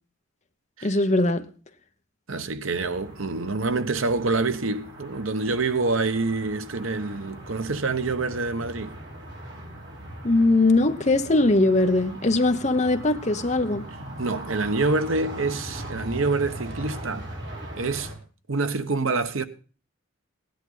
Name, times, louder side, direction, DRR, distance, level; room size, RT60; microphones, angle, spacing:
voice 1, 0.8-1.5 10.2-13.9, left 2 dB, 35° left, 0.9 m, -21 dB
voice 2, 2.3-9.0 14.2-17.3 17.8-18.1 18.5-19.4, right 3 dB, 80° right, 1.0 m, -26 dB
sound 1, 2.8-18.1, right 1 dB, 55° right, 4.0 m, -40 dB
16.5 x 10.5 x 3.9 m
head